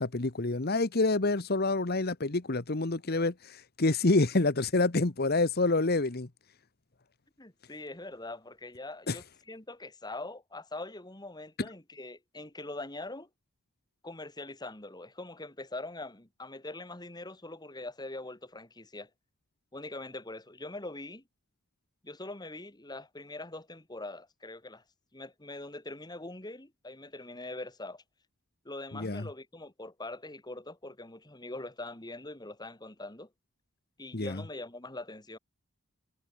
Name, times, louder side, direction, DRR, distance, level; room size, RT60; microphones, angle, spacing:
voice 1, 0.0-6.3 9.1-9.2 28.9-29.3 34.1-34.4, left 2 dB, 50° left, 1.2 m, -27 dB
voice 2, 7.4-13.3 14.0-19.1 19.7-21.2 22.0-24.8 25.1-28.0 28.6-33.3 34.0-35.4, left 2 dB, 20° left, 2.3 m, -43 dB
head